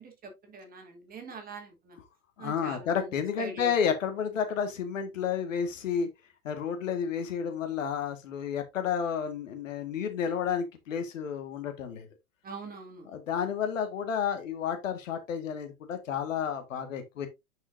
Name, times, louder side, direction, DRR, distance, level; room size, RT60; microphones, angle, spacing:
voice 1, 0.0-2.0 2.4-3.7 12.4-13.1, right 3 dB, 20° right, 2.9 m, -43 dB
voice 2, 2.4-6.1 6.4-12.1 13.1-17.3, left 7 dB, 60° left, 1.8 m, -31 dB
10.0 x 5.5 x 2.6 m
figure-of-eight pair, 100°, 43 cm